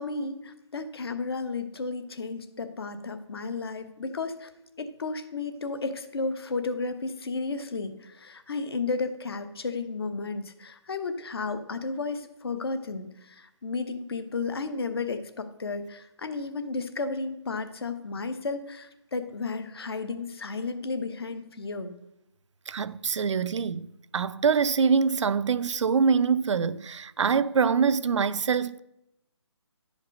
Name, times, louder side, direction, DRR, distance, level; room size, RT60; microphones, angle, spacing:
voice 1, 0.0-4.5 4.8-21.9, left 3 dB, 55° left, 0.9 m, -33 dB
voice 2, 22.7-23.9 24.1-28.8, right 6 dB, 80° right, 0.4 m, -24 dB
10.5 x 5.1 x 5.1 m
hypercardioid pair, 170°, 15 cm